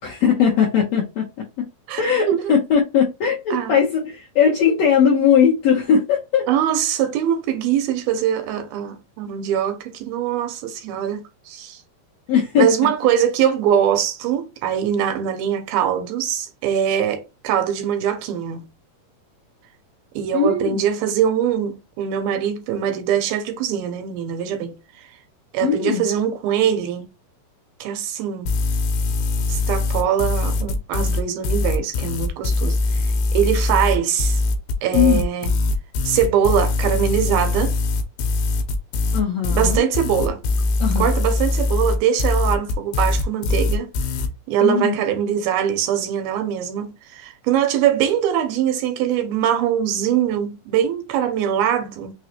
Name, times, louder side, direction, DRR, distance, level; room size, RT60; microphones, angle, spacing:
voice 1, 0.0-1.7 2.0-6.5 12.3-12.9 20.3-20.8 25.6-26.1 34.9-35.2 39.1-39.8 40.8-41.1 44.6-44.9, left 7 dB, 70° left, 1.6 m, -19 dB
voice 2, 6.5-11.8 12.6-18.7 20.1-25.1 25.5-27.1 27.8-28.5 29.5-34.4 34.8-35.5 36.0-37.8 39.5-40.4 41.0-43.9 44.5-52.1, right 9 dB, 85° right, 2.6 m, -22 dB
sound 1, 28.5-44.3, left 3 dB, 85° left, 2.5 m, -22 dB
6.0 x 2.3 x 3.0 m
omnidirectional pair, 4.3 m